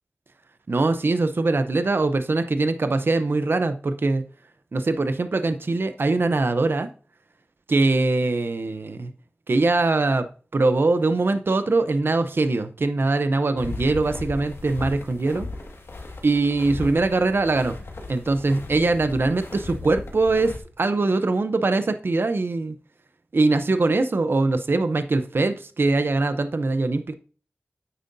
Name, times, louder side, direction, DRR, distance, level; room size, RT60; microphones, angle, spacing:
voice 1, 0.7-4.2 4.7-6.9 7.7-9.1 9.5-10.3 10.5-15.5 16.2-17.8 18.1-22.8 23.3-27.1, right 3 dB, 60° right, 9 dB, 0.6 m, -22 dB
sound 1, 13.6-20.6, left 2 dB, 75° left, 1.8 m, -36 dB
9.0 x 8.4 x 2.7 m, 0.39 s
wide cardioid pair, 75°, 4 cm